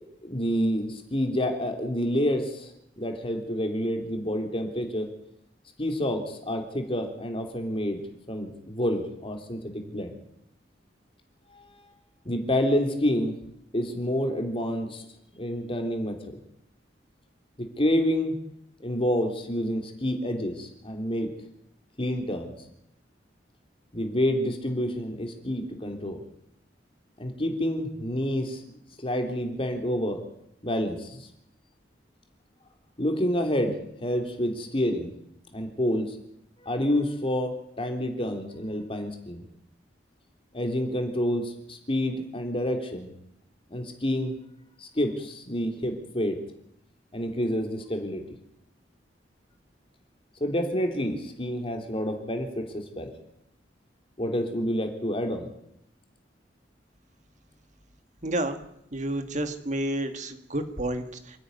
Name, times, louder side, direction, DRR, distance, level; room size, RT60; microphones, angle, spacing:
voice 1, 0.2-2.7 3.0-5.1 5.8-8.0 8.3-10.1 12.3-13.4 13.7-15.0 15.4-16.3 17.6-18.4 18.8-21.3 22.0-22.5 23.9-26.2 27.2-30.2 30.6-31.3 33.0-33.7 34.0-35.1 35.5-36.2 36.6-39.4 40.5-43.1 43.7-44.4 44.8-46.4 47.1-48.2 50.4-53.1 54.2-55.5, equal, 30° left, 4 dB, 3.4 m, -28 dB
voice 2, 58.2-58.6 58.9-61.1, right 1 dB, 45° right, 8 dB, 2.0 m, -29 dB
28.0 x 10.0 x 9.8 m, 0.78 s
head